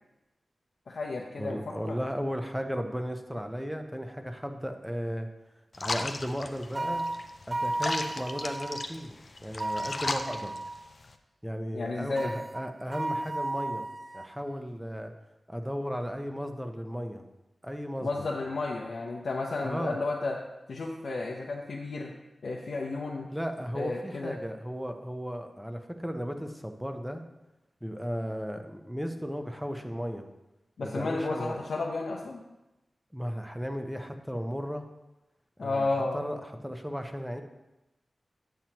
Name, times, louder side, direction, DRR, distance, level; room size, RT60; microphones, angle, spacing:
voice 1, 0.9-2.0 11.7-12.3 18.0-20.4 20.7-22.1 22.4-23.3 23.7-24.4 30.8-32.4 35.6-36.2, left 3 dB, 85° left, -2 dB, 0.7 m, -32 dB
voice 2, 1.4-5.3 5.8-7.1 7.5-10.5 11.4-13.9 14.1-15.1 15.5-17.2 17.6-18.3 19.6-20.0 23.3-27.2 27.8-30.2 30.8-31.6 33.1-34.8 35.6-35.9 36.1-37.4, equal, 5° right, 5 dB, 0.7 m, -35 dB
sound 1, 5.7-11.1, left 3 dB, 55° left, 0.6 m, -37 dB
sound 2, 6.7-8.9 9.6-10.8 12.2-14.3, right 2 dB, 40° right, 0.4 m, -34 dB
8.5 x 7.6 x 2.9 m, 0.97 s
wide cardioid pair, 85°, 0 cm